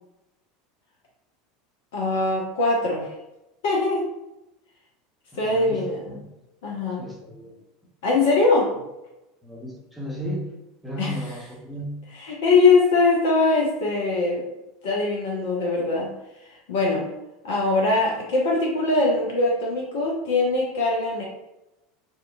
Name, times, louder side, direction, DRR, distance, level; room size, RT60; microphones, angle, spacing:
voice 1, 1.9-3.1 3.6-4.1 5.4-6.2 6.6-7.1 8.0-8.7 11.0-11.2 12.1-14.4 14.8-16.1 16.5-17.1 17.4-21.2, left 3 dB, 60° left, -2 dB, 0.5 m, -22 dB
voice 2, 5.3-6.3 7.0-7.6 9.4-10.5 10.8-12.1, equal, 5° right, -4 dB, 0.7 m, -34 dB
2.7 x 2.1 x 2.4 m, 0.95 s
figure-of-eight pair, 75°, 0 cm